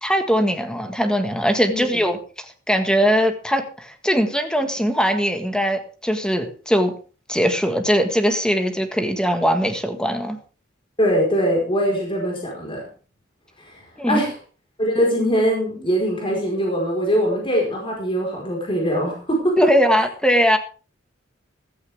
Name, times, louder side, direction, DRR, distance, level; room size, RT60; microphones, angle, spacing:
voice 1, 0.0-6.9 7.3-10.4 14.0-14.2 19.6-20.6, equal, 5° left, 6 dB, 1.7 m, -20 dB
voice 2, 11.0-12.8 13.7-13.8 14.1-14.3 14.8-19.6, equal, 25° left, 0 dB, 4.7 m, -22 dB
15.0 x 14.0 x 3.6 m, 0.37 s
head